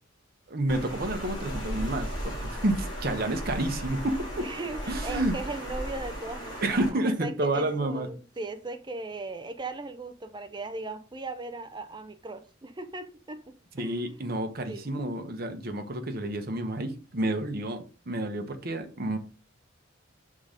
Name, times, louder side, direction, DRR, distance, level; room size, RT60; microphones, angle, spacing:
voice 1, 0.5-4.5 4.9-5.3 6.6-8.1 13.7-19.2, right 1 dB, 50° right, 0.9 m, -30 dB
Water, 0.7-6.9, equal, 25° left, 2.4 m, -36 dB
voice 2, 4.4-14.4 14.7-14.9, right 2 dB, 25° right, 0.6 m, -38 dB
5.9 x 3.7 x 5.1 m
head